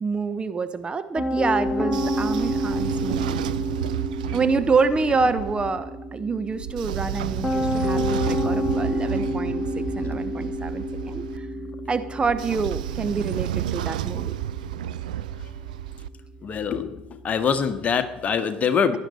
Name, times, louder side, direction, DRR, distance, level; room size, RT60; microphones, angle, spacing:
voice 1, 0.0-3.4 4.3-11.5 11.9-14.4, right 4 dB, 25° right, 11 dB, 0.8 m, -27 dB
Piano, 1.2-18.3, equal, 5° left, 1.5 m, -30 dB
Train / Sliding door, 1.7-5.7 6.5-11.4 12.2-16.1, right 12 dB, 70° right, 0.4 m, -31 dB
voice 2, 16.4-19.0, left 6 dB, 35° left, 9 dB, 1.4 m, -24 dB
17.0 x 11.5 x 4.2 m, 0.88 s
figure-of-eight pair, 65°, 4 cm